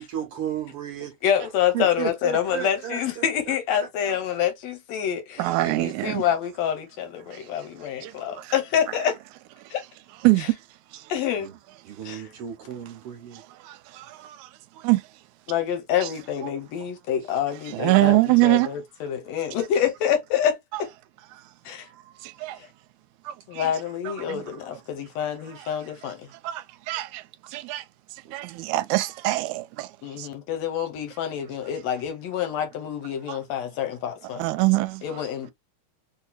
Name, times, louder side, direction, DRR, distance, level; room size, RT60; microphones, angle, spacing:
voice 1, 0.0-1.1 1.7-4.2 11.4-11.6 11.9-13.4 28.2-28.3 35.1-35.2, right 9 dB, 65° right, 1.5 m, -34 dB
voice 2, 1.2-9.2 9.7-9.8 11.1-11.5 12.1-12.3 15.5-20.9 21.7-21.9 23.5-26.3 30.0-34.4 35.0-35.5, left 9 dB, 70° left, 1.9 m, -27 dB
voice 3, 5.4-6.2 7.3-7.4 8.0-8.5 10.2-10.6 10.9-11.1 13.3-14.5 14.8-15.0 16.0-16.1 17.7-18.7 20.7-20.8 21.3-21.4 22.2-22.6 23.3-23.7 24.1-24.4 25.5-25.8 26.0-26.1 26.4-27.2 27.5-27.8 28.3-29.9 30.2-30.3 33.3-33.4 34.4-35.0, right 19 dB, 85° right, 1.9 m, -24 dB
4.3 x 2.8 x 2.2 m
omnidirectional pair, 3.3 m